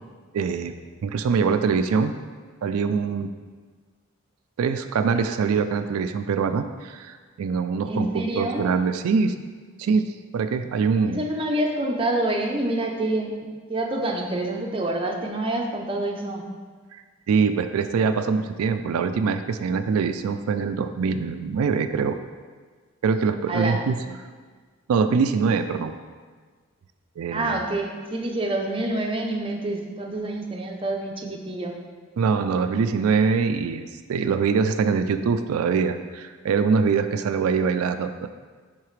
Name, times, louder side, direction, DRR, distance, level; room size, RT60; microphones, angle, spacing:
voice 1, 0.3-2.1 2.6-3.3 4.6-9.4 9.8-11.2 16.9-22.2 23.0-24.3 24.9-25.9 27.2-27.6 32.2-38.3, right 5 dB, 85° right, 9 dB, 0.3 m, -24 dB
voice 2, 7.9-8.7 11.1-16.4 23.5-23.8 27.3-31.8, right 1 dB, 25° right, 1 dB, 0.6 m, -27 dB
10.5 x 4.0 x 3.2 m, 1.5 s
head